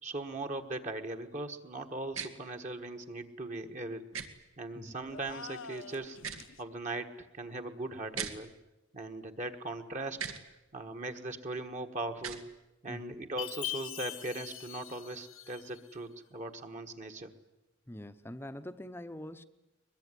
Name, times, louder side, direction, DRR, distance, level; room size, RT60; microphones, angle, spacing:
voice 1, 0.0-4.1 4.6-6.2 6.6-8.5 8.9-10.2 10.7-12.6 12.8-17.3, right 2 dB, 35° right, 1.5 m, -39 dB
sound 1, 2.1-2.3 4.1-4.3 6.1-6.5 8.1-8.3 10.1-10.4 12.1-12.4, right 7 dB, 90° right, 2.2 m, -38 dB
sound 2, 5.1-6.6, left 5 dB, 70° left, 1.0 m, -47 dB
Chime, 13.4-15.9, left 13 dB, 90° left, 2.3 m, -41 dB
voice 2, 17.9-19.4, left 1 dB, 10° left, 0.8 m, -44 dB
22.5 x 22.0 x 9.8 m
head